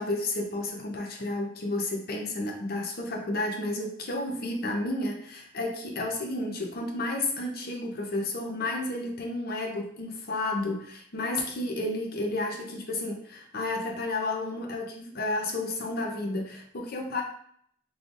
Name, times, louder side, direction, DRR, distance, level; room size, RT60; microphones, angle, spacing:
voice 1, 0.0-17.2, left 2 dB, 50° left, 1 dB, 0.7 m, -31 dB
3.8 x 3.2 x 2.5 m, 0.65 s
head